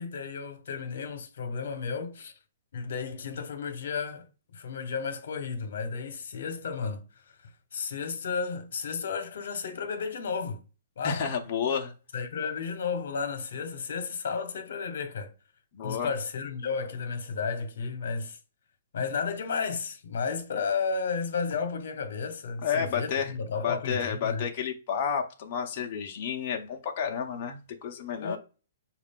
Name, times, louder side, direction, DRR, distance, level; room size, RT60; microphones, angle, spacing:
voice 1, 0.0-2.3 2.7-4.3 4.5-10.6 11.0-11.2 12.1-15.3 15.8-18.4 18.9-24.5 28.2-28.4, left 5 dB, 70° left, 1.0 m, -33 dB
voice 2, 11.0-11.9 15.7-16.1 22.6-23.3 23.6-28.4, left 7 dB, 40° left, 0.7 m, -31 dB
6.0 x 2.5 x 3.6 m
hypercardioid pair, 160°, 0 cm